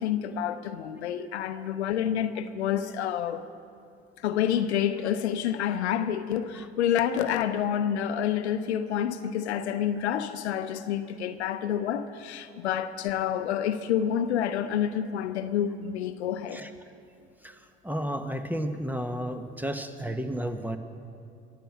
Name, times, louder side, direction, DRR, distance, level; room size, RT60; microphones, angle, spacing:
voice 1, 0.0-3.4 4.2-16.6, left 9 dB, 80° left, 11 dB, 0.8 m, -28 dB
voice 2, 17.4-20.8, equal, 5° right, 8 dB, 1.2 m, -33 dB
23.0 x 7.7 x 7.3 m, 2.5 s
hypercardioid pair, 65°, 33 cm